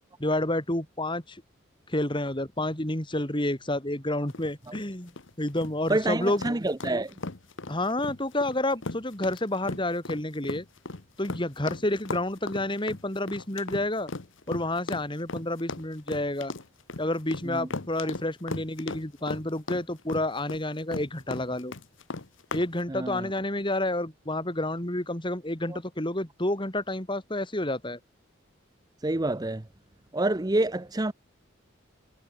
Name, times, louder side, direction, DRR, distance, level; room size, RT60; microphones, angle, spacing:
voice 1, 0.2-1.4 1.9-5.1 5.4-6.4 7.7-10.6 11.2-14.1 14.5-16.5 17.0-21.7 22.5-28.0, left 1 dB, 25° left, 2.6 m, -29 dB
sound 1, 4.3-22.7, left 3 dB, 65° left, 1.2 m, -37 dB
voice 2, 5.9-7.1 17.5-17.7 22.9-23.3 25.7-25.8 29.0-29.6 30.1-31.1, right 2 dB, 20° right, 0.7 m, -27 dB
head